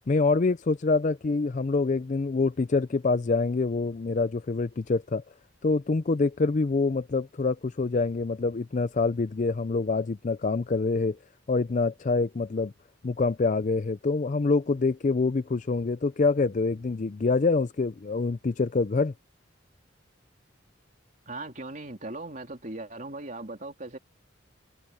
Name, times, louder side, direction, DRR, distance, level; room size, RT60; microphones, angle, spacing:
voice 1, 0.1-5.2 5.6-11.2 11.5-12.7 13.0-19.1, left 3 dB, 40° left, 0.4 m, -26 dB
voice 2, 21.3-24.0, right 2 dB, 40° right, 3.5 m, -38 dB
head